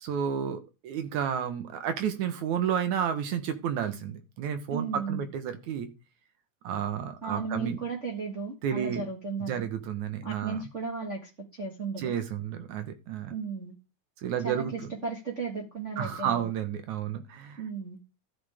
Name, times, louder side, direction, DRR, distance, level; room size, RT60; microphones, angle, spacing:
voice 1, 0.0-5.9 6.6-7.8 8.6-9.1 9.5-10.7 12.0-13.3 14.2-14.9 16.0-17.6, right 8 dB, 75° right, 2.6 m, -31 dB
voice 2, 4.7-5.3 7.2-9.7 10.2-12.1 13.3-13.7 14.4-16.4 17.6-18.0, right 4 dB, 30° right, 1.6 m, -35 dB
13.0 x 7.7 x 3.6 m
omnidirectional pair, 3.5 m